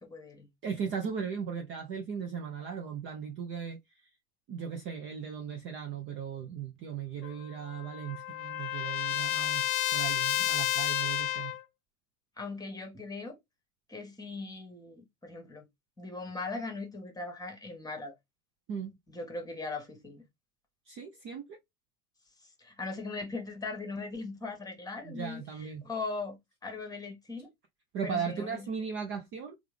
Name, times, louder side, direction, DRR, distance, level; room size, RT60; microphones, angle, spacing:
voice 1, 0.0-0.5 12.4-13.4 13.9-15.7 16.0-18.1 19.1-20.2 22.4-27.5 28.0-28.7, left 3 dB, 10° left, 1.2 m, -39 dB
voice 2, 0.6-3.8 4.5-11.6 18.7-18.9 20.9-21.6 25.0-25.8 27.9-29.5, right 7 dB, 30° right, 0.5 m, -37 dB
Trumpet, 7.2-11.6, left 13 dB, 65° left, 0.8 m, -31 dB
3.4 x 2.4 x 3.2 m
hypercardioid pair, 100°, 44 cm